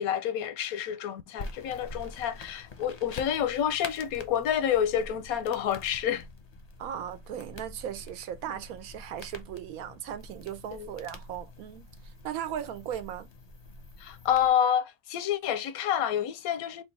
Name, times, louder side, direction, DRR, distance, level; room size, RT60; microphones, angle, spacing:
voice 1, 0.0-6.3 10.7-10.9 14.0-16.8, left 9 dB, 85° left, 1.1 m, -28 dB
sound 1, 1.4-14.5, left 2 dB, 45° left, 0.5 m, -46 dB
voice 2, 6.8-11.9 12.2-13.3, right 10 dB, 90° right, 1.1 m, -37 dB
3.7 x 2.3 x 3.9 m
omnidirectional pair, 1.5 m